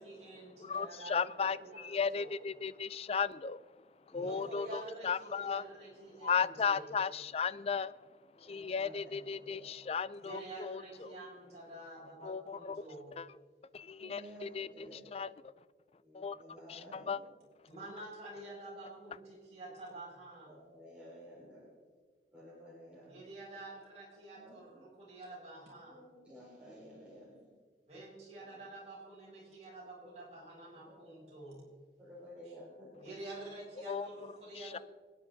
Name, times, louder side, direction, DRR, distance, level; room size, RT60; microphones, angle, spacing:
voice 1, 0.0-2.4 4.1-6.9 10.2-13.2 17.7-20.6 23.1-26.0 27.9-31.7 33.0-34.8, right 2 dB, 40° right, -5 dB, 5.5 m, -48 dB
voice 2, 0.6-1.6 1.8-3.6 4.1-5.6 6.2-7.9 8.4-11.2 12.2-12.8 13.2-13.3 13.7-14.9 15.1-15.3 16.1-16.4 16.7-17.2 33.9-34.1 34.6-34.8, left 6 dB, 35° left, 17 dB, 0.3 m, -35 dB
voice 3, 4.1-4.6 8.3-9.7 12.0-12.1 13.8-15.3 16.0-17.2 18.4-18.6 19.2-19.3 20.5-21.7 22.3-23.2 24.1-24.9 25.9-27.5 28.5-28.6 30.4-30.5 30.7-31.3 32.0-33.2, equal, 5° right, -8 dB, 3.9 m, -54 dB
25.5 x 9.7 x 4.0 m, 1.5 s
head